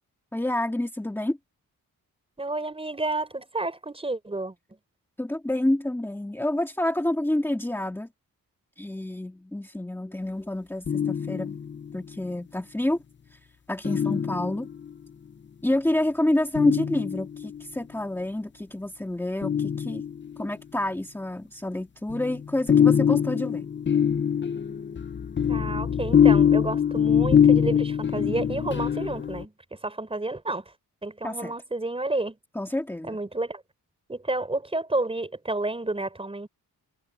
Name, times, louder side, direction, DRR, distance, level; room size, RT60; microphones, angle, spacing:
voice 1, 0.3-1.4 5.2-8.1 8.8-11.6 11.9-13.0 13.3-13.4 13.7-14.7 15.6-20.0 20.4-23.7 31.2-31.5 32.5-33.2, left 1 dB, 5° left, 2.1 m, -28 dB
voice 2, 2.4-4.5 25.5-29.5 29.8-30.6 31.0-32.3 33.0-33.6 34.1-36.5, right 2 dB, 15° right, 4.4 m, -30 dB
sound 1, 10.9-11.9 13.8-14.9 16.6-17.6 19.4-20.5 22.1-29.4, left 8 dB, 30° left, 0.6 m, -23 dB
wide cardioid pair, 160°, 36 cm